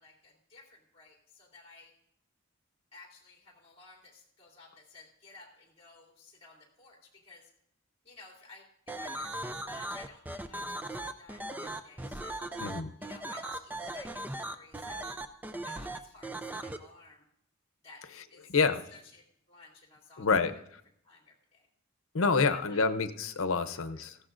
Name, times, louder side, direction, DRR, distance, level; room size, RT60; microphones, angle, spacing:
voice 1, 0.0-1.9 2.9-7.5 8.0-12.5 13.0-15.1 15.6-17.3 17.8-18.5 18.9-20.5 21.0-21.7 22.4-22.8 23.9-24.0, left 3 dB, 30° left, -1 dB, 2.9 m, -55 dB
Bending Voice, 8.9-16.8, right 1 dB, 10° right, 0.4 m, -38 dB
voice 2, 12.6-12.9 18.5-18.8 20.2-20.5 22.1-24.2, left 4 dB, 90° left, 10 dB, 0.7 m, -27 dB
17.5 x 15.0 x 2.6 m, 0.73 s
head